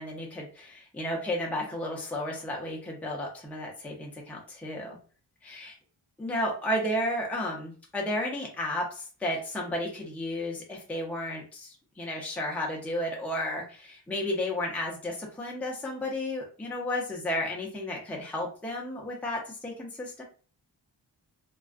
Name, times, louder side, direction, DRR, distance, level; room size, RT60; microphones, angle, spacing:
voice 1, 0.0-5.0 5.4-5.7 6.2-20.2, left 1 dB, 5° left, -1 dB, 0.5 m, -33 dB
2.4 x 2.2 x 2.4 m, 0.39 s
wide cardioid pair, 85°, 43 cm